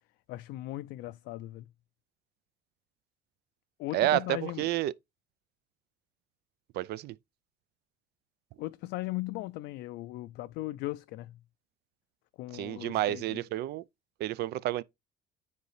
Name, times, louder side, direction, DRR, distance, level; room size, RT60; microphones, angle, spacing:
voice 1, 0.3-1.7 3.8-4.6 8.6-11.4 12.4-13.4, left 18 dB, 85° left, 0.4 m, -38 dB
voice 2, 3.9-4.9 6.7-7.1 12.5-13.8 14.2-14.8, right 14 dB, 75° right, 0.5 m, -30 dB
9.5 x 4.0 x 3.2 m
cardioid pair, 110°, 17 cm